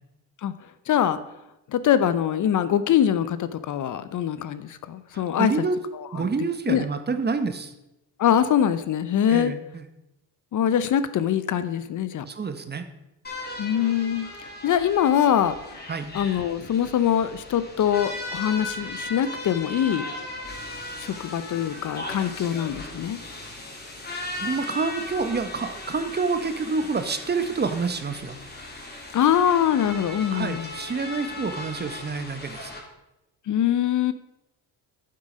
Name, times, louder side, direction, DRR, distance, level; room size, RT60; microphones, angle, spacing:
voice 1, 0.9-1.2 1.7-5.5 6.2-6.3 6.7-6.8 8.2-9.5 10.5-12.2 13.6-15.5 16.1-20.0 21.0-23.2 29.1-30.7 33.5-34.1, left 9 dB, 50° left, 13 dB, 0.7 m, -23 dB
voice 2, 5.1-5.8 6.1-7.7 9.3-9.9 12.2-12.8 15.9-16.1 24.4-28.4 30.3-32.7, right 4 dB, 25° right, 9 dB, 0.9 m, -28 dB
sound 1, 13.2-32.8, left 2 dB, 25° left, 3.2 m, -37 dB
9.5 x 7.6 x 5.0 m, 0.91 s
cardioid pair, 100°, 38 cm